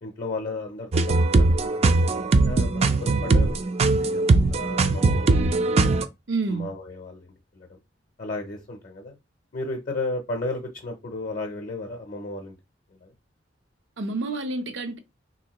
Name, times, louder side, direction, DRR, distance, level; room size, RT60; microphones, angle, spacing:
voice 1, 0.0-2.0 2.4-6.0 6.5-7.7 8.2-9.2 9.5-12.6 13.0-13.1, left 2 dB, 45° left, 0.5 m, -34 dB
sound 1, 0.9-6.1, right 3 dB, 35° right, 0.3 m, -20 dB
voice 2, 6.3-6.7 14.0-15.0, right 3 dB, 75° right, 0.6 m, -28 dB
3.4 x 2.7 x 2.9 m
head